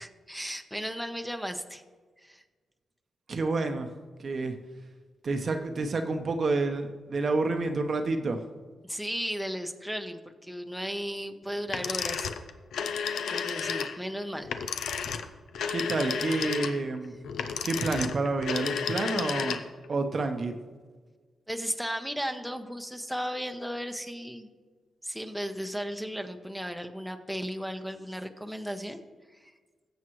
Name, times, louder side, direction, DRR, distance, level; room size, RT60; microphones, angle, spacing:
voice 1, 0.0-1.8 2.2-2.4 8.8-12.3 12.8-14.6 14.9-15.0 21.5-24.5 25.0-29.0 29.3-29.5, equal, ahead, 6 dB, 0.8 m, -35 dB
voice 2, 3.3-3.9 4.2-4.5 5.2-8.4 15.7-17.1 17.6-19.6 19.9-20.6, right 3 dB, 50° right, 6 dB, 0.8 m, -29 dB
sound 1, 11.7-19.9, left 7 dB, 85° left, 0.6 m, -32 dB
17.0 x 7.3 x 3.1 m, 1.4 s
cardioid pair, 75°, 0 cm